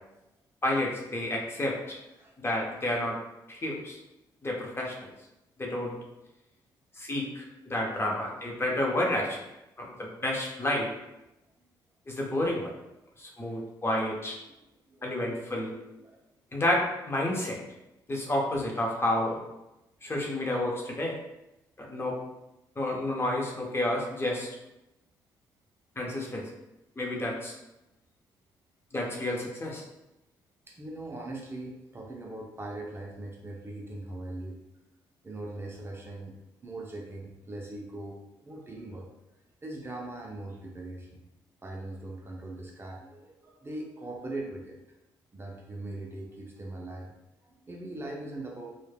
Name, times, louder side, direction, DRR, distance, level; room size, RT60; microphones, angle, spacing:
voice 1, 0.6-2.0 2.4-3.2 3.5-4.0 4.4-5.1 5.6-6.0 7.0-9.4 9.8-10.9 12.1-12.7 13.2-14.4 15.0-15.7 16.5-17.6 18.1-19.4 20.0-21.2 21.8-22.1 22.8-24.5 26.0-26.4 27.0-27.6 28.9-29.8, left 1 dB, 25° left, -2 dB, 0.7 m, -30 dB
voice 2, 14.9-15.2 16.0-16.2 30.7-34.6 35.2-39.1 39.6-41.2 41.6-44.8 45.3-47.1 47.4-48.7, right 2 dB, 25° right, -1 dB, 0.5 m, -40 dB
3.1 x 2.1 x 2.2 m, 0.94 s
supercardioid pair, 60°, 9 cm